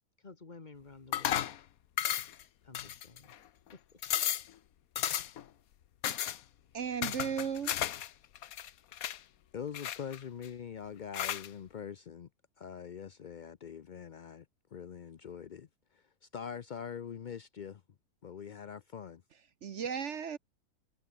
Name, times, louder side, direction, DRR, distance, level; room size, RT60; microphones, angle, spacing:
voice 1, 0.2-1.6 2.6-3.4 3.7-4.0, left 3 dB, 30° left, 1.5 m, -53 dB
sound 1, 1.1-1.6 2.0-2.4 2.7-3.4 3.7-3.8 4.0-4.5 5.0-5.4 6.0-6.4 7.0-8.1 8.4-9.2 9.7-10.5 11.1-11.5, left 11 dB, 65° left, 1.3 m, -34 dB
voice 2, 6.7-7.7 19.6-20.4, right 7 dB, 55° right, 1.1 m, -35 dB
voice 3, 9.5-12.3 12.6-14.5 14.7-17.8 18.2-19.2, left 7 dB, 90° left, 0.4 m, -43 dB
omnidirectional pair, 1.7 m